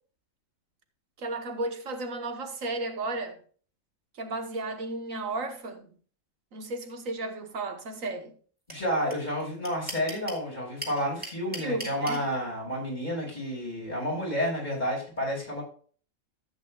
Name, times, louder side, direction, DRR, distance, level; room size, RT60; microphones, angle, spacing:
voice 1, 1.2-3.4 4.2-5.9 6.5-8.3 11.6-12.2, right 2 dB, 70° right, 1.6 m, -34 dB
voice 2, 8.7-15.6, equal, 35° left, 5.6 m, -30 dB
sound 1, 8.7-8.8 9.1-9.2 9.4-10.4 10.8-12.2, equal, 5° right, 2.4 m, -36 dB
14.0 x 8.8 x 2.3 m
omnidirectional pair, 1.4 m